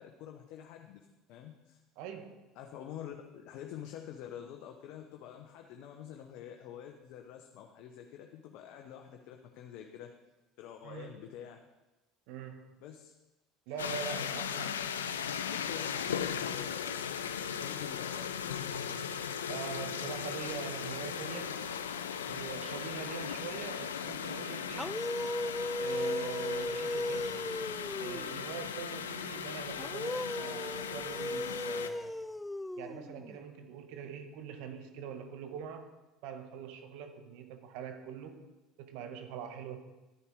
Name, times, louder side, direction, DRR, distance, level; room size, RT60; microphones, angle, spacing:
voice 1, 0.0-1.8 2.5-10.1 10.6-11.6 12.8-13.1 13.7-14.8 15.4-19.0, left 9 dB, 65° left, 3 dB, 1.1 m, -47 dB
voice 2, 2.0-2.5 10.8-11.3 12.3-12.7 13.7-14.8 19.5-21.7 22.2-25.0 25.8-27.5 28.0-32.2 32.8-35.9 36.2-38.4 38.8-39.8, right 7 dB, 65° right, 7 dB, 1.5 m, -43 dB
sound 1, 13.8-31.9, left 7 dB, 90° left, 0.6 m, -37 dB
sound 2, 24.7-28.4 29.8-33.4, left 1 dB, 10° left, 0.3 m, -37 dB
11.5 x 9.9 x 4.8 m, 1.1 s
hypercardioid pair, 75°, 0 cm